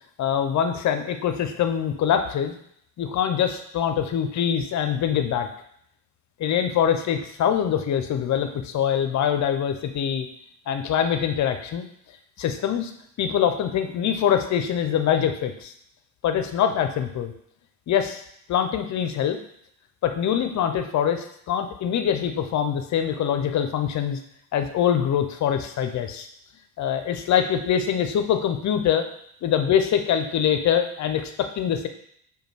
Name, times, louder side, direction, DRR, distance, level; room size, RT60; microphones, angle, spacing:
voice 1, 0.2-2.6 3.0-5.5 6.4-10.3 10.7-11.9 12.4-12.9 13.2-15.7 16.2-17.3 17.9-18.2 18.5-19.4 20.0-24.2 24.5-26.3 26.8-29.1 29.4-31.9, left 9 dB, 40° left, 8 dB, 0.6 m, -24 dB
4.9 x 2.3 x 3.3 m, 0.70 s
hypercardioid pair, 70°, 43 cm